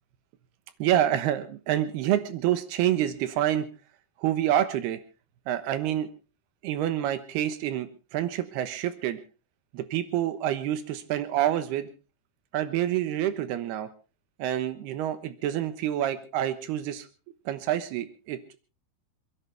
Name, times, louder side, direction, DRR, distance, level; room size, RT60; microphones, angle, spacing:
voice 1, 0.8-3.7 4.2-5.0 5.5-6.1 6.6-9.2 9.7-11.9 12.5-13.9 14.4-17.1 17.5-18.4, right 11 dB, 90° right, 11 dB, 3.2 m, -27 dB
28.0 x 11.0 x 3.4 m, 0.33 s
omnidirectional pair, 4.5 m